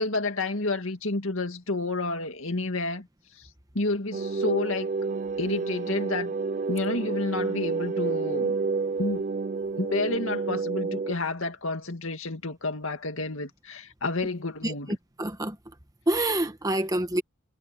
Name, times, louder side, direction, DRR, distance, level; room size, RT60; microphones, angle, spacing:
voice 1, 0.0-3.1 3.4-3.5 3.7-4.9 5.4-6.3 6.7-8.6 9.0-9.2 9.8-15.0, left 2 dB, 65° left, 2.2 m, -30 dB
sound 1, 4.1-11.1, right 4 dB, 35° right, 0.4 m, -29 dB
voice 2, 15.2-15.5 16.1-17.2, right 1 dB, 15° right, 1.4 m, -26 dB
head